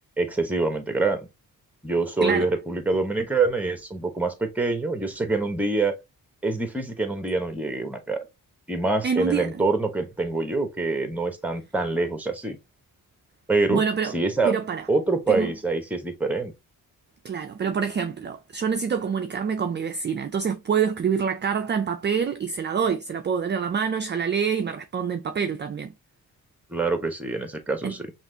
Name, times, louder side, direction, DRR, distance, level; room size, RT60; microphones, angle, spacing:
voice 1, 0.2-1.3 1.8-5.9 6.4-8.3 8.7-12.6 13.5-13.8 14.1-14.6 14.9-16.5 26.7-28.0, right 3 dB, 5° right, 1.0 m, -25 dB
voice 2, 9.0-9.5 13.7-14.2 14.4-14.8 15.3-15.5 17.2-25.9 27.8-27.9, right 6 dB, 30° right, 0.4 m, -26 dB
5.8 x 2.5 x 2.7 m
wide cardioid pair, 125°, 35 cm